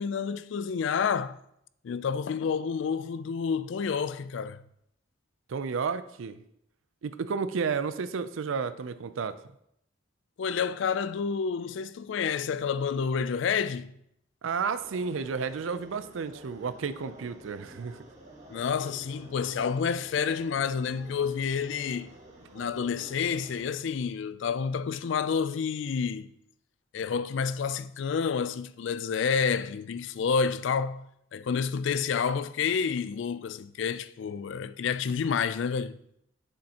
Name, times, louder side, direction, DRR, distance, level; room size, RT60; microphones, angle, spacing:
voice 1, 0.0-1.4 1.8-4.6 10.4-13.9 18.5-22.1 22.5-26.3 26.9-31.1 31.3-36.0, left 6 dB, 65° left, 0.3 m, -29 dB
voice 2, 5.5-6.4 7.0-9.4 14.4-18.0, right 5 dB, 80° right, 0.5 m, -32 dB
sound 1, 14.8-23.7, right 1 dB, 35° right, 2.0 m, -50 dB
7.7 x 7.2 x 2.9 m
head